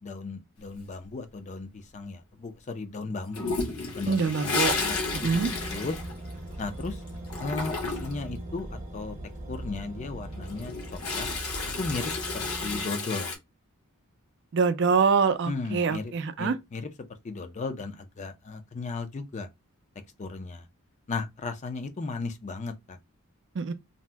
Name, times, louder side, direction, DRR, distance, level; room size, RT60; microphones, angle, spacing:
voice 1, 0.0-3.5 3.9-5.9 6.6-7.0 7.4-9.2 9.5-11.3 11.8-13.3 15.5-16.1 16.4-16.9 17.2-19.5 20.2-20.7 21.1-23.0, left 3 dB, 30° left, 0.4 m, -35 dB
Toilet flush, 3.3-6.8 7.1-8.3 10.3-13.4, left 3 dB, 70° left, 0.9 m, -32 dB
voice 2, 4.1-4.7 5.1-5.5 14.5-16.6 23.6-23.7, right 5 dB, 55° right, 0.4 m, -24 dB
sound 1, 4.6-12.8, right 1 dB, 35° right, 0.8 m, -39 dB
2.7 x 2.0 x 3.3 m
head